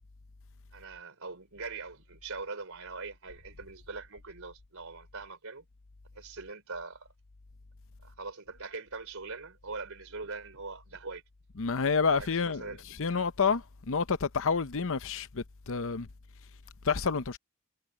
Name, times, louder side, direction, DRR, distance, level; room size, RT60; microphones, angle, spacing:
voice 1, 0.7-5.7 6.1-7.1 8.0-11.2 12.0-13.2, right 4 dB, 65° right, 4.5 m, -42 dB
voice 2, 11.6-12.6 13.0-16.1 16.8-17.4, left 5 dB, 60° left, 0.8 m, -29 dB
head